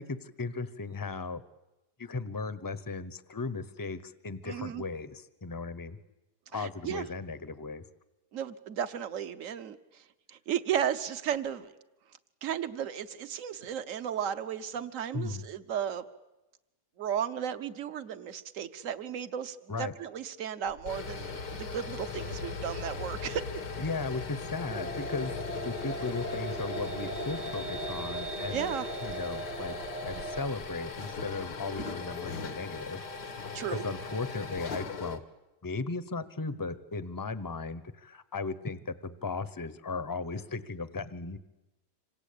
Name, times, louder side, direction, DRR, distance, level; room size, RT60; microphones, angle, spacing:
voice 1, 0.0-1.4 2.0-6.0 6.5-7.8 15.1-15.4 19.7-19.9 23.8-28.7 29.0-29.8 30.0-35.2 35.6-41.4, left 3 dB, 15° left, 14 dB, 0.8 m, -36 dB
voice 2, 4.4-4.8 6.5-7.0 8.3-10.0 10.3-11.7 12.4-16.0 17.0-23.6 28.5-28.9 33.5-33.8, right 9 dB, 55° right, 11 dB, 1.4 m, -34 dB
sound 1, 20.7-35.2, left 4 dB, 90° left, 2.4 m, -39 dB
sound 2, 24.7-30.4, right 2 dB, 35° right, 1.2 m, -38 dB
27.0 x 25.5 x 8.6 m, 0.99 s
omnidirectional pair, 1.8 m